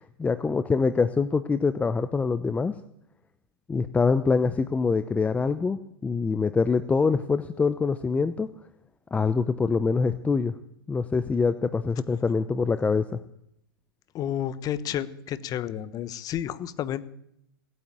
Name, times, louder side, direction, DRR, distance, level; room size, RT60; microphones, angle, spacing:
voice 1, 0.0-2.7 3.7-8.5 9.1-10.5 10.9-13.2, left 4 dB, 10° left, 12 dB, 0.7 m, -25 dB
voice 2, 14.1-17.0, left 10 dB, 30° left, 15 dB, 1.1 m, -31 dB
17.5 x 9.3 x 8.7 m, 0.75 s
hypercardioid pair, 115°, 12 cm